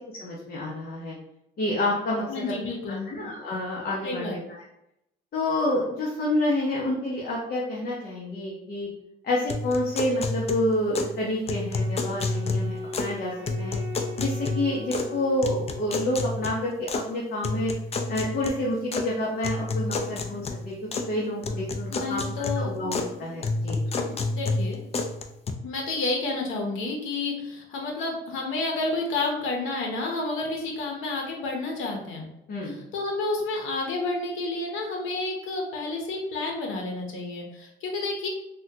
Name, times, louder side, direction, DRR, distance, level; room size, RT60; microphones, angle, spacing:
voice 1, 0.2-1.1 1.6-2.5 2.9-4.4 5.3-8.9 9.2-13.8 14.2-17.7 18.1-20.7 21.1-23.8 32.5-32.8, left 1 dB, 50° left, -4 dB, 0.8 m, -28 dB
voice 2, 2.3-3.1 4.0-4.3 21.9-22.7 24.0-24.8 25.6-32.3 32.6-38.3, left 3 dB, 90° left, 1 dB, 0.8 m, -30 dB
sound 1, 9.5-11.2 11.5-13.2 13.5-15.1 15.4-17.1 17.4-19.1 19.4-21.1 21.4-23.1 23.4-25.5, left 3 dB, 30° left, 0.4 m, -30 dB
Wind instrument woodwind instrument, 11.7-16.2, left 1 dB, 75° right, 0.9 m, -39 dB
3.5 x 2.2 x 2.7 m, 0.85 s
cardioid pair, 90°, 20 cm